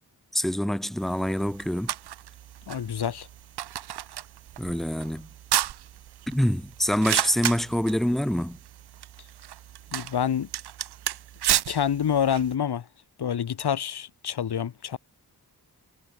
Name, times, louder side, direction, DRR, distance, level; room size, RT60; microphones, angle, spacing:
voice 1, 0.3-1.9 4.6-5.3 6.3-8.6, equal, ahead, 0.4 m, -26 dB
sound 1, 1.0-12.6, right 12 dB, 75° right, 0.5 m, -33 dB
voice 2, 2.7-3.3 9.9-10.5 11.7-12.9 13.2-15.0, left 8 dB, 70° left, 1.1 m, -27 dB
cardioid pair, 45°, 41 cm